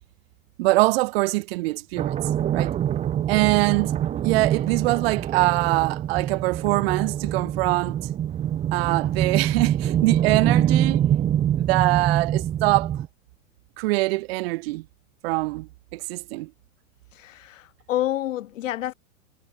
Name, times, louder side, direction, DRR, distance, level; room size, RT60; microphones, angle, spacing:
voice 1, 0.6-2.2 2.5-2.8 3.3-3.9 4.2-8.0 8.7-11.0 11.6-13.0 13.8-14.8 15.2-16.5, right 21 dB, 45° right, 2.0 m, -23 dB
sound 1, 2.0-13.1, right 10 dB, 15° right, 1.2 m, -25 dB
voice 2, 17.1-18.9, left 13 dB, 70° left, 6.4 m, -28 dB
supercardioid pair, 160°, 40 cm